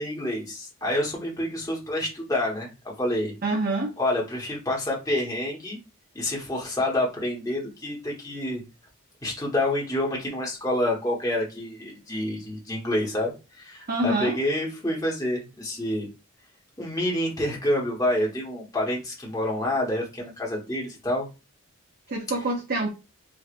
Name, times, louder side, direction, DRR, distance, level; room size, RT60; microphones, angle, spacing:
voice 1, 0.0-3.3 4.0-5.8 6.1-8.6 9.2-16.1 16.8-21.3, left 1 dB, 15° left, 1.1 m, -28 dB
voice 2, 3.4-3.9 13.9-14.3 22.1-22.9, right 2 dB, 45° right, 0.6 m, -26 dB
4.7 x 2.4 x 2.4 m
head